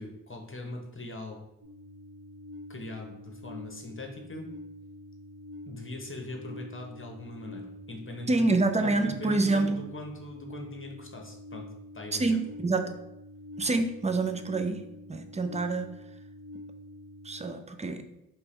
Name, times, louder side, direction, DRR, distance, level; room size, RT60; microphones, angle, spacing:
voice 1, 0.0-1.5 2.7-4.5 5.7-8.5 8.8-11.7 11.9-12.4, left 2 dB, 35° left, 1 dB, 0.9 m, -41 dB
sound 1, 1.6-17.5, left 1 dB, 55° right, 1.4 m, -46 dB
voice 2, 8.3-9.8 12.1-12.9 13.6-15.9 17.2-18.1, right 3 dB, 20° right, 7 dB, 0.4 m, -27 dB
4.5 x 3.2 x 3.2 m, 0.87 s
wide cardioid pair, 60°, 36 cm